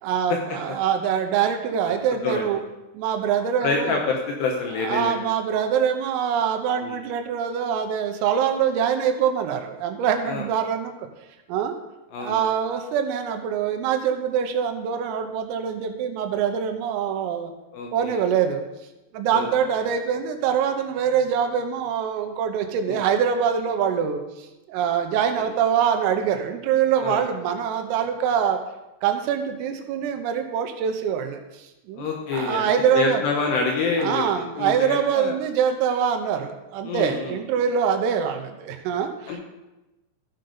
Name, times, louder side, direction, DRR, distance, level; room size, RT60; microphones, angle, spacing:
voice 1, 0.0-2.6 3.0-4.0 4.8-11.0 11.5-11.7 12.2-17.5 17.9-18.6 19.1-28.6 29.0-32.1 32.3-33.2 34.0-39.4, right 8 dB, 85° right, 6 dB, 3.6 m, -24 dB
voice 2, 3.6-5.2 6.8-7.0 10.3-10.5 12.1-12.4 17.7-18.2 19.3-19.5 22.9-23.0 27.0-27.2 32.0-34.3 34.6-35.3 36.8-37.4 39.3-39.4, left 4 dB, 75° left, 1 dB, 2.6 m, -27 dB
15.0 x 6.7 x 3.9 m, 0.99 s
omnidirectional pair, 5.9 m